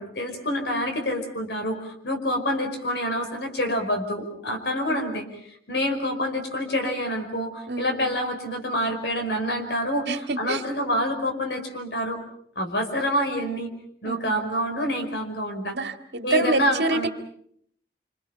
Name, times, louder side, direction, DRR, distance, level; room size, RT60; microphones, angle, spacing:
voice 1, 0.0-5.3 5.7-12.2 12.6-13.7 14.0-15.8 16.2-17.1, equal, 70° left, 5 dB, 5.3 m, -27 dB
voice 2, 7.7-8.1 10.1-10.6 14.0-14.3 15.7-17.1, right 3 dB, 70° right, 7 dB, 2.1 m, -27 dB
27.5 x 27.5 x 5.7 m, 0.65 s
head